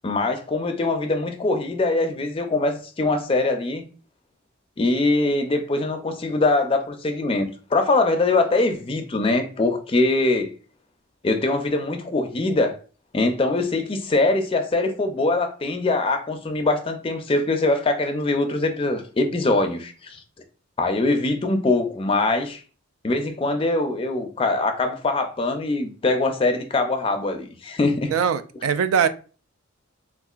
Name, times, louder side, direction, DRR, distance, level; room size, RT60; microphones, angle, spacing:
voice 1, 0.0-3.8 4.8-10.5 11.2-12.8 13.1-20.2 20.8-22.6 23.0-28.1, left 2 dB, 25° left, 0.4 m, -22 dB
voice 2, 28.1-29.1, right 7 dB, 85° right, 0.3 m, -21 dB
3.7 x 2.4 x 2.3 m
head